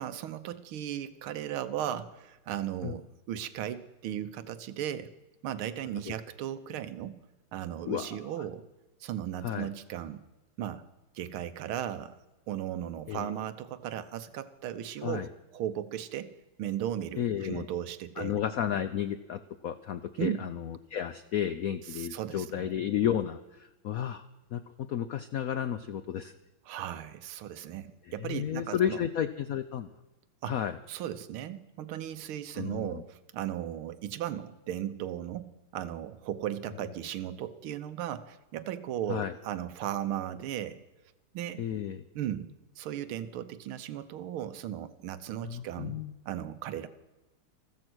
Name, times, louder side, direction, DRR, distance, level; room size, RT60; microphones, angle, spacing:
voice 1, 0.0-5.1 5.4-7.2 7.5-8.7 9.0-10.2 10.6-10.8 11.2-12.2 12.5-16.3 16.6-18.4 20.2-20.4 21.9-22.7 26.7-29.0 30.4-30.5 30.9-40.8 41.3-41.6 42.2-42.5 42.8-46.0 46.3-46.9, right 11 dB, 85° right, 12 dB, 1.7 m, -36 dB
voice 2, 7.8-8.4 9.4-9.7 13.1-13.3 15.0-15.3 17.2-17.7 18.2-24.2 24.5-26.3 28.1-29.9 30.5-30.7 32.5-33.0 39.1-39.3 41.6-42.0 45.4-46.1, left 9 dB, 85° left, 11 dB, 0.7 m, -32 dB
14.5 x 13.0 x 6.2 m, 1.0 s
omnidirectional pair, 2.3 m